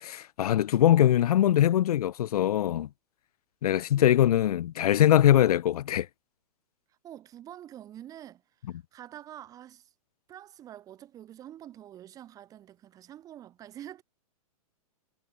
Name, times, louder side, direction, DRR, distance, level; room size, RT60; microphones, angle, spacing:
voice 1, 0.0-2.9 3.6-6.1, left 11 dB, 80° left, 0.6 m, -22 dB
voice 2, 4.0-4.4 7.0-9.9 10.3-14.0, right 11 dB, 20° right, 1.8 m, -47 dB
hypercardioid pair, 160°, 19 cm